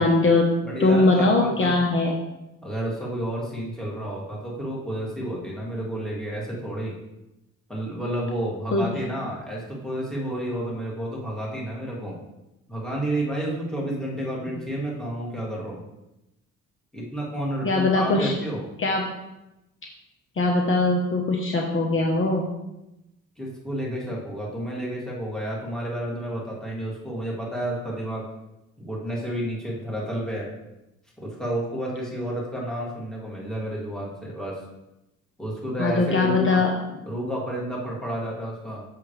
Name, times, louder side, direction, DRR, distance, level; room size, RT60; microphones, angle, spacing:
voice 1, 0.0-0.5 0.8-2.2 8.7-8.9 17.6-18.3 18.8-19.1 20.4-22.5 35.8-36.7, left 2 dB, 45° left, 0 dB, 1.1 m, -21 dB
voice 2, 0.6-1.7 2.6-7.0 7.7-12.2 12.7-15.8 16.9-18.6 23.4-28.2 28.8-30.5 31.2-34.6 35.4-36.6 37.1-38.9, right 1 dB, ahead, -5 dB, 2.6 m, -30 dB
6.8 x 6.7 x 3.3 m, 0.93 s
cardioid pair, 90°, 30 cm